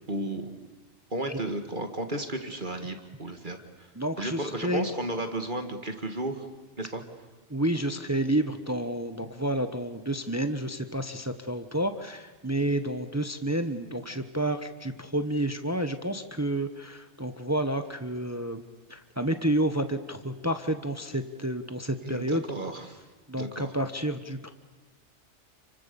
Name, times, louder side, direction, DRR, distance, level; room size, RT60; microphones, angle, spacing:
voice 1, 0.1-0.5 1.1-3.9 4.2-6.5 6.8-7.0 22.0-23.0 23.4-23.7, right 1 dB, 45° right, 6 dB, 2.1 m, -33 dB
voice 2, 3.9-4.9 7.5-18.6 18.9-22.4 23.3-24.5, right 1 dB, 15° right, 9 dB, 1.1 m, -30 dB
29.5 x 24.5 x 7.0 m, 1.3 s
omnidirectional pair, 1.2 m